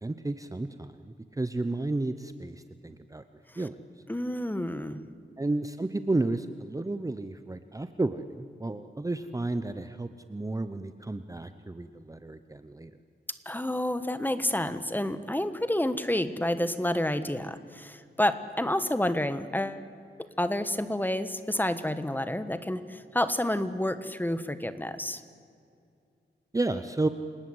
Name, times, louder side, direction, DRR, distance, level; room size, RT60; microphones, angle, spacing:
voice 1, 0.0-3.2 3.6-3.8 5.4-12.9 26.5-27.1, right 2 dB, 20° right, 10 dB, 0.8 m, -32 dB
voice 2, 4.1-5.0 13.4-19.8 20.4-25.2, left 1 dB, 10° left, 11 dB, 1.4 m, -29 dB
29.0 x 19.0 x 8.0 m, 2.4 s
wide cardioid pair, 95°, 18 cm